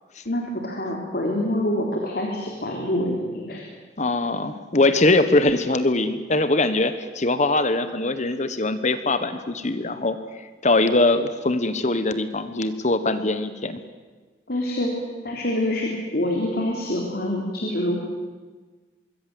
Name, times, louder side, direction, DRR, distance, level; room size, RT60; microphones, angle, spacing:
voice 1, 0.3-3.6 14.5-14.9 15.2-18.0, left 1 dB, 55° left, 0 dB, 3.5 m, -26 dB
voice 2, 4.0-13.8, left 2 dB, 40° left, 11 dB, 1.3 m, -22 dB
25.0 x 23.0 x 7.8 m, 1.4 s
head